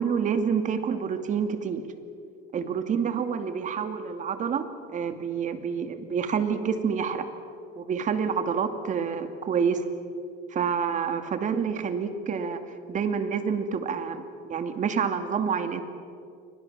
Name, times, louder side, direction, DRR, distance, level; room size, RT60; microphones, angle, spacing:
voice 1, 0.0-1.9 2.5-7.3 7.8-9.8 10.5-12.6 12.9-15.8, right 6 dB, 40° right, 8 dB, 2.5 m, -28 dB
30.0 x 24.0 x 7.5 m, 2.4 s
cardioid pair, 125°, 20 cm